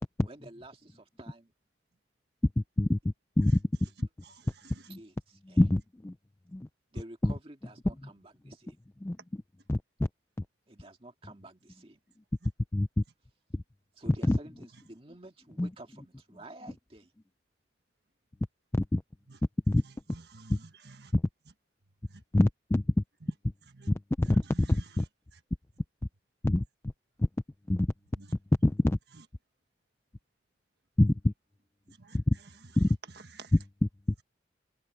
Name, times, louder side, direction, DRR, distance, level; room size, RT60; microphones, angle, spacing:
voice 1, 0.2-1.5 3.8-3.9 4.6-5.6 6.9-8.8 10.7-12.0 14.0-17.1, right 1 dB, 30° right, 2.1 m, -50 dB
voice 2, 2.6-3.0 3.4-3.6 4.9-5.0 5.6-6.1 6.5-6.7 7.2-7.3 9.0-9.4 9.7-9.8 12.7-13.0 13.5-13.6 14.3-14.4 15.6-15.7 18.7-19.0 19.7-19.8 20.5-20.6 21.1-21.2 22.3-22.8 23.9-25.0 26.4-26.6 27.2-27.3 27.7-27.9 28.6-29.0 31.0-31.3 32.1-32.4 32.8-32.9, left 1 dB, 15° left, 0.3 m, -25 dB
voice 3, 4.2-4.9 19.3-19.4 19.8-21.1 22.1-22.2 23.8-23.9 24.2-24.8 28.2-28.3 32.0-32.2 33.3-33.5, right 3 dB, 60° right, 1.5 m, -51 dB
open air
head